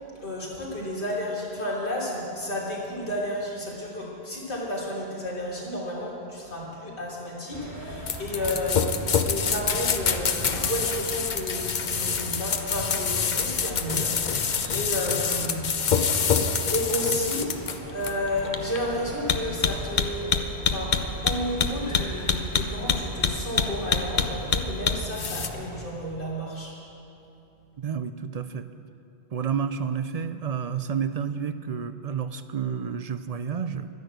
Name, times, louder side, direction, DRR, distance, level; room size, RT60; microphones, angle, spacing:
voice 1, 0.2-8.9 9.3-15.7 16.6-17.5 17.9-26.7, left 1 dB, 90° left, -5 dB, 3.6 m, -32 dB
sound 1, 7.5-25.8, right 1 dB, 85° right, 3.3 m, -39 dB
sound 2, 8.1-25.5, left 6 dB, 50° left, 0.8 m, -26 dB
voice 2, 27.8-28.7 29.3-33.9, right 7 dB, 50° right, 11 dB, 0.4 m, -30 dB
12.5 x 10.5 x 7.9 m, 2.8 s
omnidirectional pair, 1.1 m